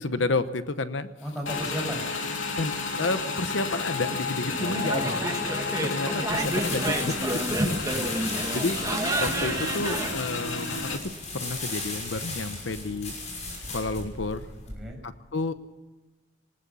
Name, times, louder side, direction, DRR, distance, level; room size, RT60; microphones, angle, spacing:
voice 1, 0.0-1.1 2.6-5.1 5.8-8.2 8.5-8.8 9.2-10.9 11.3-13.1 13.7-14.5 15.0-15.5, left 3 dB, 70° left, 12 dB, 0.9 m, -31 dB
voice 2, 1.2-2.1 4.8-5.2 7.9-8.6 14.7-15.0, equal, ahead, -2 dB, 6.5 m, -35 dB
Motorcycle / Engine, 1.5-11.0, left 4 dB, 90° left, 2.6 m, -32 dB
sound 1, 4.5-10.1, right 1 dB, 20° right, 1.9 m, -30 dB
sound 2, 6.3-14.7, left 3 dB, 40° left, 6.0 m, -36 dB
19.5 x 19.5 x 7.0 m, 1.2 s
head